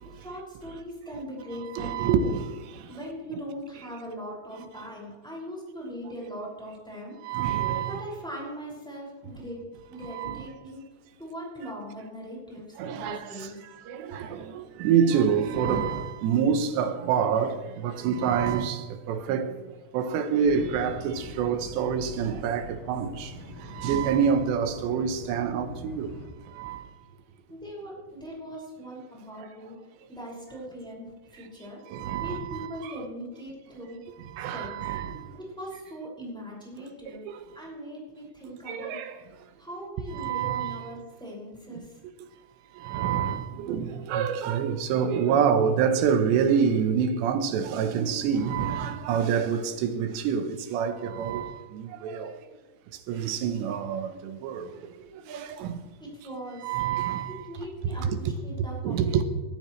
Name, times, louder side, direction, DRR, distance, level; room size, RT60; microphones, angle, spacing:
voice 1, 0.1-2.1 2.9-7.2 7.9-9.6 9.9-10.8 11.2-13.6 27.5-29.7 30.1-31.8 32.2-34.0 34.5-34.8 35.4-37.2 37.5-39.0 39.6-42.0 56.0-56.8 57.3-59.2, equal, ahead, 5.3 m, -40 dB
voice 2, 1.8-2.5 7.2-8.0 10.1-10.4 12.8-13.2 13.9-18.8 19.1-19.5 19.9-23.3 23.8-26.1 26.6-26.8 31.9-32.9 34.4-35.2 38.7-39.1 40.1-40.8 42.8-52.3 53.1-54.7 55.3-55.7 56.6-57.3 58.0-58.2 58.8-59.2, right 7 dB, 80° right, 3.2 m, -26 dB
sound 1, 20.4-26.3, equal, 35° left, 2.3 m, -42 dB
21.0 x 13.5 x 3.2 m
omnidirectional pair, 5.0 m